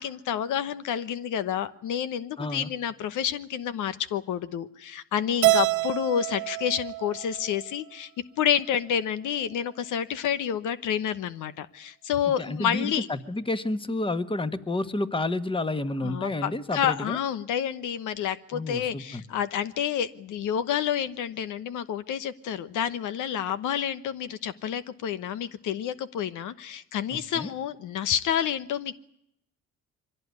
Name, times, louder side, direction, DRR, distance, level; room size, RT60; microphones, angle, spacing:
voice 1, 0.0-8.1 8.4-13.1 16.0-29.0, left 9 dB, 85° left, 13 dB, 1.1 m, -29 dB
voice 2, 2.4-2.7 12.3-17.2 18.5-19.2 27.1-27.5, left 2 dB, 15° left, 11 dB, 1.5 m, -30 dB
Keyboard (musical), 5.4-7.8, right 18 dB, 80° right, 1.0 m, -26 dB
23.5 x 17.0 x 9.6 m, 0.75 s
cardioid pair, 90°, 30 cm